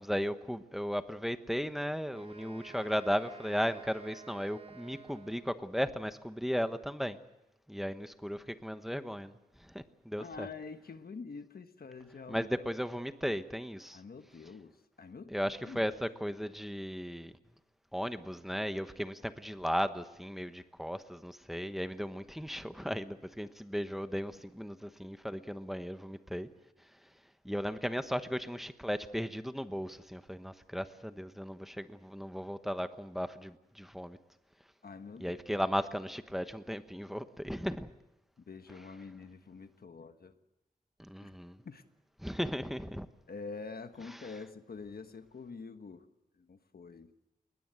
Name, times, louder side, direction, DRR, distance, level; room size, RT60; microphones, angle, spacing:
voice 1, 0.0-7.2 7.7-10.5 12.3-14.0 15.3-17.3 17.9-26.5 27.0-27.1 27.4-34.2 35.2-37.9 41.0-41.6 42.2-43.1 44.1-44.3, equal, ahead, 1.1 m, -36 dB
Wind instrument woodwind instrument, 2.1-5.8, right 4 dB, 40° right, 4.0 m, -52 dB
voice 2, 10.2-12.5 13.9-15.3 15.6-15.9 34.8-35.4 38.5-40.4 41.2-41.3 41.6-41.8 43.3-46.1 46.4-47.1, left 4 dB, 90° left, 1.3 m, -46 dB
21.0 x 20.5 x 8.1 m
wide cardioid pair, 80°, 15 cm